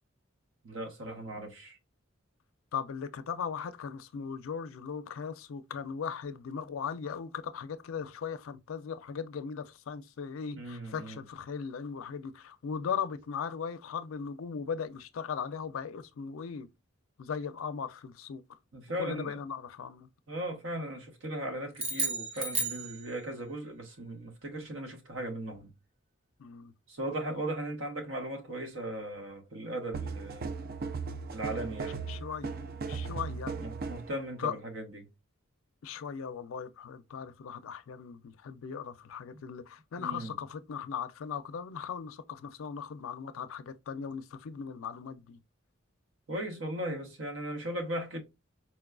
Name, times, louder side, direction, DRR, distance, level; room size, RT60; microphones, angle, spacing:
voice 1, 0.6-1.8 10.5-11.2 18.7-19.4 20.3-25.7 26.9-30.5 31.3-32.0 33.6-35.1 39.3-39.4 40.0-40.3 46.3-48.2, right 1 dB, 70° right, 1.0 m, -37 dB
voice 2, 2.7-16.7 17.2-18.4 19.0-20.1 26.4-26.7 32.1-32.5 32.9-33.5 34.4-34.5 35.8-45.4, left 6 dB, 90° left, 0.4 m, -38 dB
sound 1, 21.7-23.5, right 3 dB, 30° right, 0.7 m, -33 dB
sound 2, 29.9-34.1, right 4 dB, 50° right, 0.4 m, -37 dB
4.2 x 2.3 x 2.3 m
head